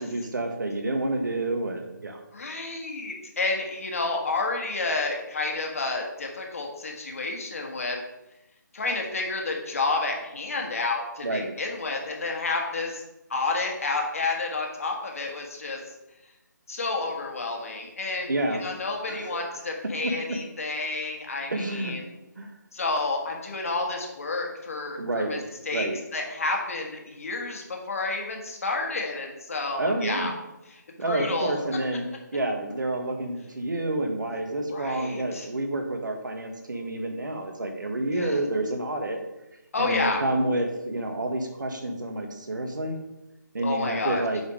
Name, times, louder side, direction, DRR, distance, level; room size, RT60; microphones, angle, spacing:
voice 1, 0.0-2.2 11.2-11.5 18.3-18.6 19.1-19.5 20.0-20.1 21.5-22.0 22.4-22.5 25.0-25.3 25.7-26.0 29.8-30.3 31.0-39.2 39.8-43.0 43.5-44.4, right 2 dB, 75° right, 3 dB, 1.4 m, -29 dB
voice 2, 2.3-8.0 8.7-13.0 13.3-15.8 16.7-18.3 18.6-22.0 22.7-25.9 26.1-30.3 30.7-31.6 34.7-35.5 38.1-38.4 39.7-40.2 43.6-44.2, left 3 dB, 45° left, 1 dB, 1.5 m, -30 dB
7.0 x 4.3 x 4.8 m, 0.95 s
figure-of-eight pair, 170°, 10 cm